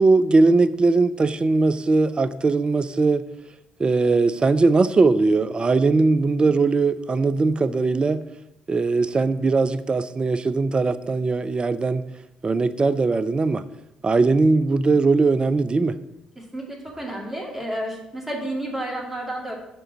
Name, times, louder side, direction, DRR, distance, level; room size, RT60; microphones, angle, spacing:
voice 1, 0.0-3.2 3.8-8.2 8.7-12.0 12.4-13.6 14.0-16.0, right 3 dB, 30° right, 15 dB, 0.4 m, -20 dB
voice 2, 16.4-19.5, right 1 dB, 10° right, -1 dB, 2.2 m, -31 dB
6.8 x 3.8 x 6.2 m, 0.91 s
hypercardioid pair, 45°, 3 cm